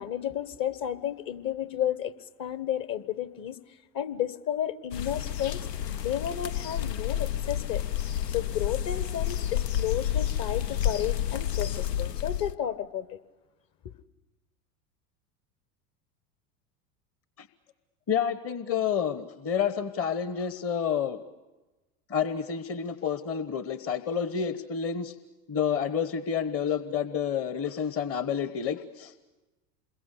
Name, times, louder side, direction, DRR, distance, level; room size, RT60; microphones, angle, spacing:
voice 1, 0.0-2.1 2.4-3.6 3.9-7.8 8.3-13.2, left 11 dB, 45° left, 1.5 m, -32 dB
sound 1, 4.9-12.5, left 10 dB, 90° left, 0.8 m, -30 dB
voice 2, 18.1-21.2 22.1-25.2 25.5-29.2, left 7 dB, 30° left, 1.1 m, -29 dB
27.5 x 22.0 x 8.3 m
hypercardioid pair, 85°, 47 cm